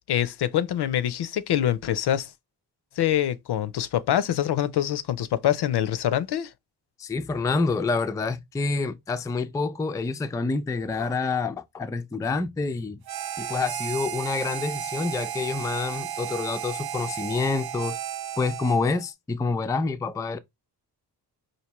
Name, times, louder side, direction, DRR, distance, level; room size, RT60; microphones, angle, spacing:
voice 1, 0.1-2.3 3.0-6.5, left 11 dB, 65° left, 0.5 m, -25 dB
voice 2, 7.0-13.0 13.4-18.0 18.4-20.4, left 4 dB, 10° left, 0.3 m, -27 dB
Harmonica, 13.1-19.1, right 10 dB, 60° right, 0.6 m, -33 dB
4.5 x 2.7 x 2.9 m
cardioid pair, 70°, 44 cm